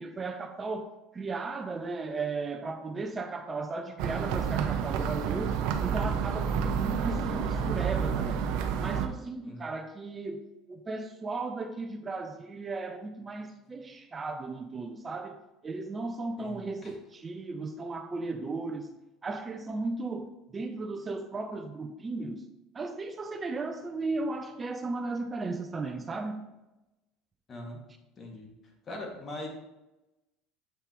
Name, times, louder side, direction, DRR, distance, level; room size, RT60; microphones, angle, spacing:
voice 1, 0.0-8.4 8.8-15.4 15.6-18.9 19.2-22.5 22.7-26.5, right 3 dB, 30° right, 0.7 m, -36 dB
sound 1, 4.0-9.1, right 7 dB, 70° right, 0.7 m, -29 dB
voice 2, 16.4-17.0 27.5-27.8 28.2-28.5 28.9-29.5, left 1 dB, 35° left, 2.1 m, -41 dB
8.3 x 5.7 x 3.1 m
supercardioid pair, 85°, 0 cm